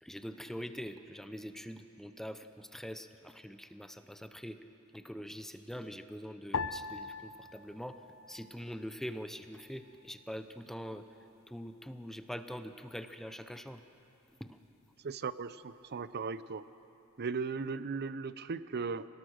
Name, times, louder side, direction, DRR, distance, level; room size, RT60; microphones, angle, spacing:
voice 1, 0.0-4.6 4.9-11.1 11.5-13.8 14.4-14.6, equal, ahead, 9 dB, 0.6 m, -44 dB
sound 1, 6.5-9.1 9.3-10.2 10.8-11.3, left 4 dB, 65° left, 0.6 m, -42 dB
voice 2, 15.0-16.6 17.2-19.1, right 4 dB, 50° right, 15 dB, 0.6 m, -37 dB
25.5 x 18.5 x 6.5 m, 2.8 s
head